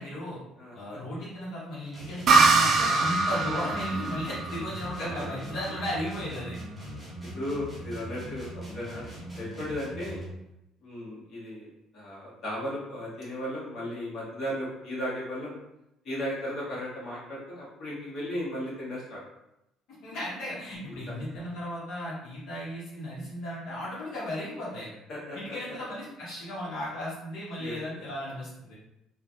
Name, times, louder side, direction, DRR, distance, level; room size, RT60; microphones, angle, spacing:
voice 1, 0.0-0.4 0.7-6.5 20.0-24.9 25.3-28.8, equal, 65° left, -7 dB, 0.9 m, -35 dB
voice 2, 0.6-1.0 5.0-5.2 7.2-9.0 9.3-10.2 10.8-15.6 16.0-19.2 20.9-21.0 25.1-25.6 27.6-28.1, equal, 40° left, -7 dB, 1.1 m, -36 dB
sound 1, 1.9-10.4, equal, ahead, 0.8 m, -40 dB
sound 2, 2.3-5.8, right 4 dB, 40° right, 0.3 m, -24 dB
3.1 x 2.2 x 2.6 m, 0.85 s
cardioid pair, 165°, 0 cm